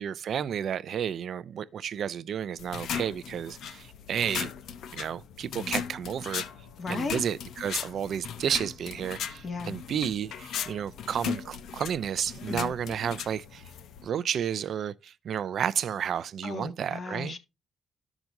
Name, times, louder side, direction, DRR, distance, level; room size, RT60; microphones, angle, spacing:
voice 1, 0.0-4.5 4.9-6.4 6.9-13.6 14.0-17.4, right 8 dB, 60° right, 0.5 m, -32 dB
sound 1, 2.6-14.1, left 8 dB, 75° left, 0.7 m, -37 dB
voice 2, 6.8-7.2 9.4-9.8 12.5-12.7 16.4-17.4, left 4 dB, 45° left, 1.8 m, -35 dB
13.0 x 6.0 x 2.6 m
cardioid pair, 90°, 0 cm